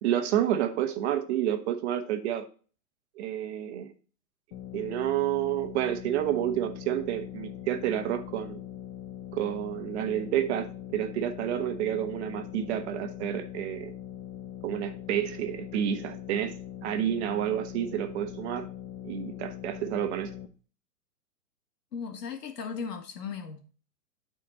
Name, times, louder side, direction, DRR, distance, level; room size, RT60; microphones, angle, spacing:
voice 1, 0.0-2.5 3.2-3.9 4.7-8.6 9.3-13.9 14.6-18.7 19.0-20.3, right 11 dB, 45° right, 1.2 m, -29 dB
sound 1, 4.5-20.5, left 10 dB, 40° left, 0.9 m, -42 dB
voice 2, 21.9-23.7, left 6 dB, 80° left, 1.8 m, -37 dB
9.2 x 4.4 x 4.1 m
hypercardioid pair, 135°, 47 cm